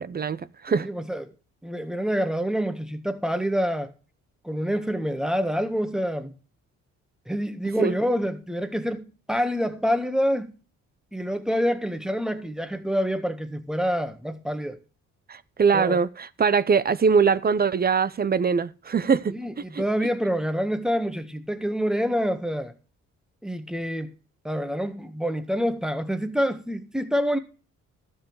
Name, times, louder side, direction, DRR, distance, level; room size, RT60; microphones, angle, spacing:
voice 1, 0.0-0.9 7.8-7.9 15.3-19.3 19.7-19.8, right 5 dB, 30° right, 0.7 m, -22 dB
voice 2, 0.7-1.3 1.6-3.9 4.4-6.3 7.3-10.5 11.1-14.8 15.7-16.0 19.3-22.7 23.4-24.1 24.4-27.4, equal, ahead, 1.5 m, -27 dB
12.5 x 7.3 x 4.6 m
cardioid pair, 90°, 30 cm